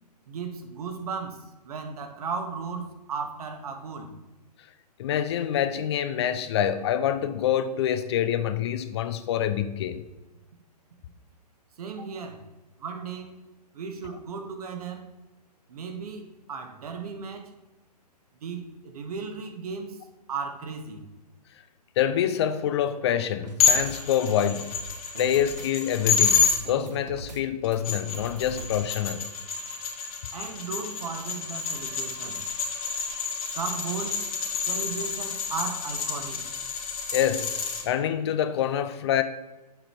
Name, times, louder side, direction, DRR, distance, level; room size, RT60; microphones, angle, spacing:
voice 1, 0.3-4.1 11.8-12.4 12.8-13.3 13.7-15.1 15.7-17.5 18.4-20.0 20.3-21.0 30.3-32.4 33.5-34.2 34.6-36.4, right 5 dB, 65° right, 6 dB, 1.3 m, -35 dB
voice 2, 5.0-10.0 22.0-24.8 25.2-29.2 37.1-39.2, left 10 dB, 40° left, 11 dB, 0.5 m, -26 dB
sound 1, 23.4-24.0 24.3-25.7 26.0-27.4 27.7-28.8, right 4 dB, 85° right, 0.7 m, -41 dB
sound 2, 23.6-26.6 27.6-37.8, left 6 dB, 60° left, 1.9 m, -28 dB
7.7 x 4.1 x 4.5 m, 1.1 s
hypercardioid pair, 135°, 21 cm